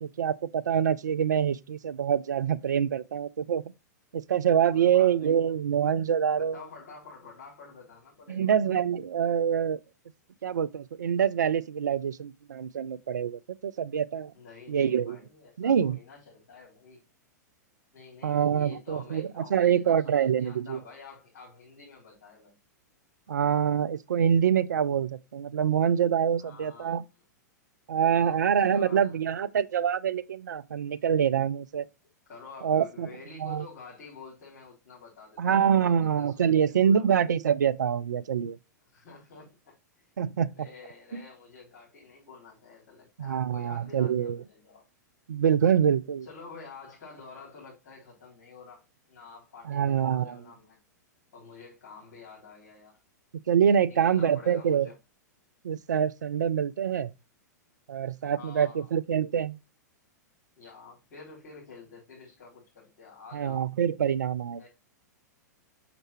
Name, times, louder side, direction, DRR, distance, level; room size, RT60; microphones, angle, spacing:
voice 1, 0.0-3.6 4.1-6.6 8.3-9.8 10.4-14.3 14.7-15.2 15.6-16.0 18.2-20.8 23.3-27.0 27.9-31.9 32.6-33.1 33.4-33.6 35.4-38.6 40.2-40.7 41.1-41.2 43.2-44.4 45.3-46.3 49.7-50.4 53.5-54.9 55.6-57.1 57.9-59.6 63.3-64.6, right 8 dB, 75° right, 0.4 m, -25 dB
voice 2, 4.7-5.4 6.3-8.5 14.3-17.0 17.9-22.6 26.4-26.9 28.1-29.2 32.3-37.1 38.9-40.1 40.4-44.8 46.2-50.8 51.3-53.0 53.8-55.0 58.3-58.9 60.6-63.6 64.6-64.7, left 4 dB, 60° left, 3.8 m, -49 dB
6.4 x 5.9 x 3.0 m
figure-of-eight pair, 105°, 10 cm